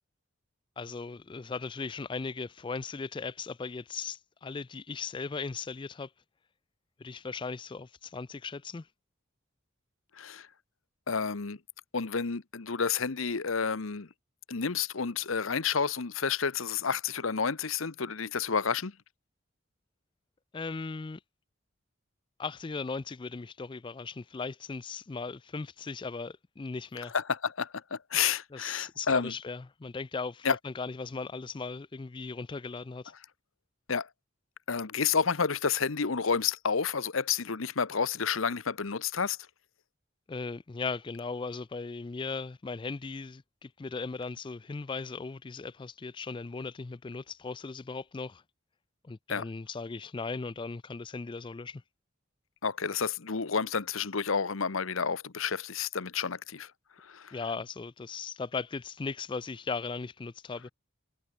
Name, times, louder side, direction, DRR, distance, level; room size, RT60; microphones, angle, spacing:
voice 1, 0.8-6.1 7.0-8.9 20.5-21.2 22.4-27.1 28.5-33.1 40.3-48.4 49.0-51.8 57.3-60.7, left 4 dB, 25° left, 0.4 m, -38 dB
voice 2, 10.2-10.5 11.1-11.6 11.9-14.1 14.5-18.9 27.1-29.3 30.4-30.6 33.9-34.1 34.7-39.4 49.3-49.5 52.6-56.7 57.0-57.3, left 6 dB, 85° left, 1.0 m, -30 dB
head